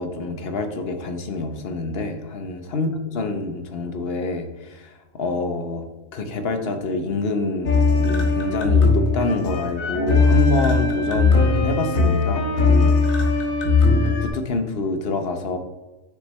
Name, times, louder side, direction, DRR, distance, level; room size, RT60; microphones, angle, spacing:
voice 1, 0.0-5.8 6.1-13.3 13.8-15.6, left 3 dB, 50° left, 6 dB, 1.0 m, -27 dB
sound 1, 7.7-14.3, left 4 dB, 90° left, 1.6 m, -19 dB
8.1 x 6.5 x 3.2 m, 1.1 s
omnidirectional pair, 1.4 m